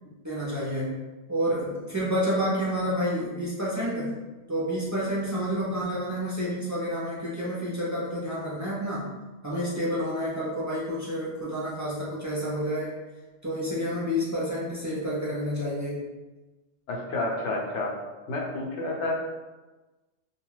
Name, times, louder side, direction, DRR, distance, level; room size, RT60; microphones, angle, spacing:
voice 1, 0.2-0.9 1.3-4.1 4.5-9.1 9.4-13.0 13.4-16.0, equal, 30° right, -8 dB, 0.3 m, -29 dB
voice 2, 16.9-17.9 18.3-19.1, left 2 dB, 70° left, -1 dB, 0.9 m, -30 dB
2.3 x 2.3 x 3.1 m, 1.2 s
omnidirectional pair, 1.3 m